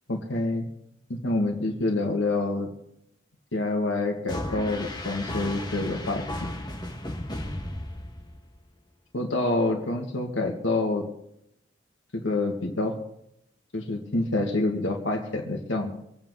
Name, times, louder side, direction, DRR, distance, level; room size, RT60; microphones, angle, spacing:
voice 1, 0.1-0.7 1.1-2.7 3.5-6.2 9.1-11.0 12.1-12.9 13.7-15.9, left 2 dB, 80° left, 2 dB, 2.2 m, -27 dB
sound 1, 4.3-8.6, left 1 dB, 20° left, 1.9 m, -34 dB
25.5 x 8.9 x 4.1 m, 0.78 s
head